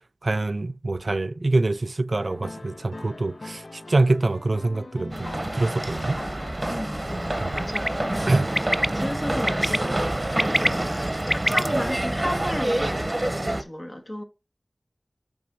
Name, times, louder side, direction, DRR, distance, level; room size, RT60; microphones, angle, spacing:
voice 1, 0.2-6.2 7.4-7.6 8.3-8.5, right 2 dB, 70° right, 0.4 m, -25 dB
sound 1, 2.2-8.5, left 2 dB, 90° left, 0.5 m, -41 dB
sound 2, 5.1-13.6, right 1 dB, 30° right, 0.9 m, -27 dB
voice 2, 6.7-7.1 7.5-9.9 10.6-10.9 11.3-14.2, equal, 40° left, 1.8 m, -34 dB
Bird, 7.6-7.9 8.6-8.9 9.5-9.8 10.2-11.6, equal, 5° left, 0.3 m, -23 dB
8.4 x 3.4 x 5.4 m
wide cardioid pair, 50°, 0 cm